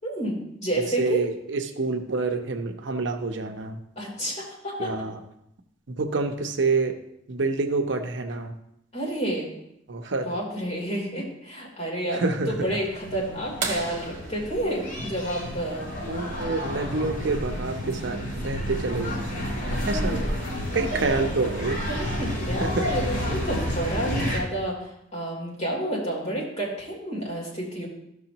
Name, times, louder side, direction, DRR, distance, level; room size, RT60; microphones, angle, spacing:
voice 1, 0.0-1.2 3.9-4.9 8.9-9.5 10.2-15.9 19.7-20.2 20.9-21.0 22.0-27.9, right 1 dB, 35° left, -4 dB, 3.2 m, -30 dB
voice 2, 0.8-3.8 4.8-5.2 5.9-7.0 7.3-8.5 9.9-10.3 12.1-12.5 16.1-19.4 19.9-20.2 20.7-22.1 22.6-22.9, right 3 dB, 65° right, 5 dB, 0.8 m, -27 dB
sound 1, 12.4-24.4, equal, 70° left, 3.4 m, -31 dB
sound 2, 13.6-16.1 18.0-18.1 20.3-20.4 22.1-22.4 23.2-23.3, right 4 dB, 40° right, 1.3 m, -35 dB
13.5 x 6.3 x 2.9 m, 0.79 s
head